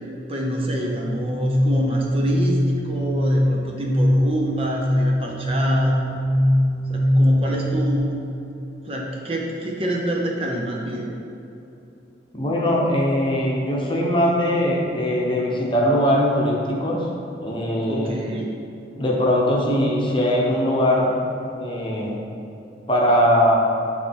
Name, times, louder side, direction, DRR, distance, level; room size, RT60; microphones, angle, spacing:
voice 1, 0.3-6.0 6.9-8.2 8.8-11.1 17.9-18.5, right 1 dB, 30° right, -1 dB, 0.7 m, -27 dB
sound 1, 1.1-8.0, left 1 dB, ahead, 0.3 m, -21 dB
voice 2, 12.3-17.1 17.4-18.2 19.0-21.2 21.5-22.2 22.9-23.6, equal, 25° left, -3 dB, 1.0 m, -20 dB
9.8 x 3.3 x 4.5 m, 2.9 s
head